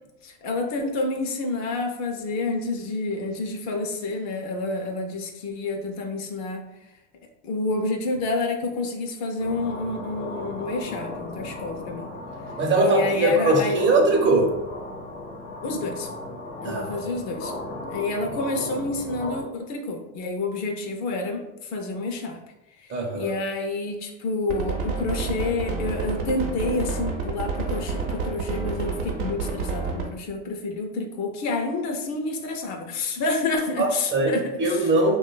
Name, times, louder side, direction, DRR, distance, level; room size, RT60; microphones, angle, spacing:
voice 1, 0.2-6.6 7.4-12.1 12.7-13.8 15.6-16.1 16.6-17.5 17.8-22.4 22.8-34.9, left 3 dB, 55° left, 4 dB, 0.5 m, -29 dB
sound 1, 9.4-19.4, left 2 dB, 90° left, 0.9 m, -36 dB
voice 2, 12.6-14.6 16.6-17.1 22.9-23.3 33.8-35.2, right 2 dB, 35° right, 1 dB, 0.6 m, -21 dB
sound 2, 24.5-30.1, right 4 dB, 80° right, 0.7 m, -28 dB
2.5 x 2.2 x 2.2 m, 0.98 s
supercardioid pair, 95°, 34 cm